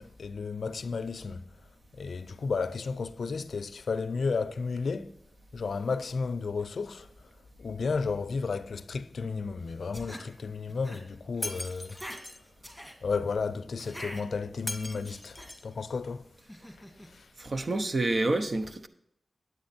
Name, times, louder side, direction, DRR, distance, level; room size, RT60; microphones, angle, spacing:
voice 1, 0.0-1.4 1.9-5.1 5.5-7.3 7.6-12.0 13.0-16.3 17.0-17.3, left 4 dB, 80° left, 0.5 m, -33 dB
sound 1, 9.7-10.3 10.7-11.0 11.3-12.2 12.6-12.9 13.8-14.2 14.8-15.5 16.4-17.1, equal, 5° right, 2.4 m, -45 dB
Shatter, 11.4-12.4 14.7-15.7, left 1 dB, 15° left, 1.0 m, -39 dB
voice 2, 17.4-18.9, right 2 dB, 55° right, 0.9 m, -28 dB
9.4 x 8.2 x 4.2 m
cardioid pair, 55°, 0 cm